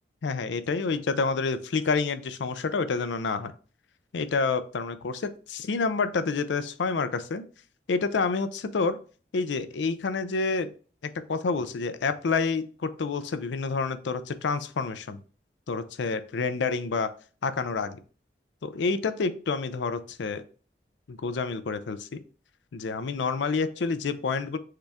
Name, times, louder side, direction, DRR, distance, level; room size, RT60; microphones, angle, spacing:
voice 1, 0.2-3.5 4.1-7.4 7.9-9.0 9.3-10.7 11.3-15.2 15.7-17.1 17.4-18.0 18.6-20.4 21.1-22.2 22.7-24.6, left 4 dB, 80° left, 11 dB, 0.4 m, -28 dB
6.5 x 2.4 x 3.4 m, 0.39 s
head